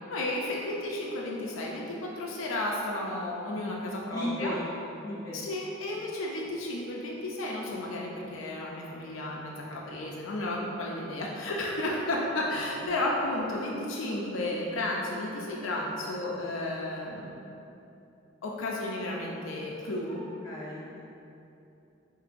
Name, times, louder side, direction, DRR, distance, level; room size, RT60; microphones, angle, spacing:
voice 1, 0.1-4.6 5.3-17.3 18.4-20.2, left 1 dB, 85° left, -2 dB, 0.5 m, -33 dB
voice 2, 4.1-4.6 5.0-5.5 12.5-12.6 20.1-20.2 20.4-21.0, equal, 20° left, -11 dB, 1.1 m, -35 dB
5.7 x 2.6 x 2.5 m, 2.8 s
head